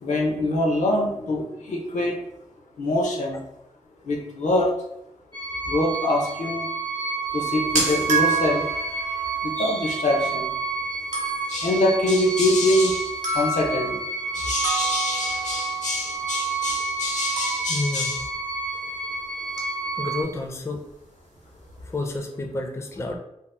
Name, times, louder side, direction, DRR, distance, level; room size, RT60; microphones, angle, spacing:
voice 1, 0.0-2.2 2.8-3.4 4.1-4.7 5.7-6.6 7.3-8.6 9.4-10.5 11.5-13.1 13.3-13.9 14.3-18.2, left 1 dB, 80° left, 0 dB, 0.6 m, -24 dB
sound 1, 5.3-20.2, right 4 dB, 40° right, 0.7 m, -29 dB
sound 2, 7.3-19.2 19.5-19.9 20.2-20.3 20.9-21.0 21.2-21.8, right 3 dB, 90° right, 0.8 m, -32 dB
voice 2, 17.7-18.2 20.0-20.8 21.8-23.2, left 2 dB, 25° left, 2 dB, 0.4 m, -30 dB
2.8 x 2.0 x 3.2 m, 0.82 s
wide cardioid pair, 85°, 12 cm